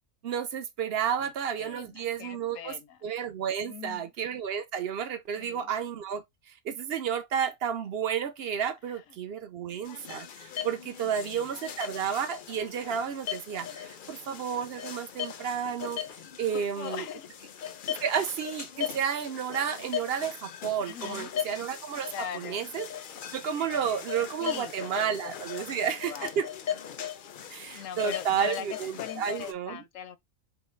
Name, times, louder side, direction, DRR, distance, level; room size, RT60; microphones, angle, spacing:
voice 1, 0.2-2.7 3.0-16.0 16.4-17.0 17.9-22.9 23.3-26.5 27.5-29.8, right 8 dB, 60° right, 0.7 m, -31 dB
voice 2, 1.6-3.0 3.6-4.1 5.3-5.7 11.1-11.5 16.5-17.3 20.8-21.3 22.0-22.7 23.6-24.1 24.4-25.3 25.6-26.3 27.2-28.7 29.0-30.2, left 9 dB, 75° left, 1.0 m, -41 dB
sound 1, 9.8-29.5, left 9 dB, 55° left, 0.5 m, -39 dB
5.6 x 2.0 x 4.4 m
omnidirectional pair, 1.4 m